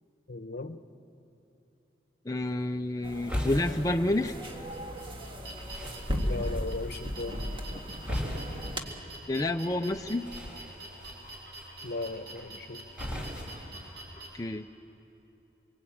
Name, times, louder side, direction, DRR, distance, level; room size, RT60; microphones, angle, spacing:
voice 1, 0.3-0.8 6.2-7.8 11.8-12.9, left 2 dB, 60° left, 10 dB, 1.0 m, -37 dB
voice 2, 2.2-4.4 9.3-10.3 14.3-14.7, left 1 dB, 20° left, 4 dB, 0.6 m, -29 dB
sound 1, 2.4-14.4, left 1 dB, 10° right, 5.2 m, -41 dB
sound 2, 3.0-8.8, equal, 30° right, 1.8 m, -36 dB
sound 3, 4.2-14.3, right 2 dB, 70° right, 7.9 m, -46 dB
26.5 x 23.5 x 8.7 m, 2.9 s
head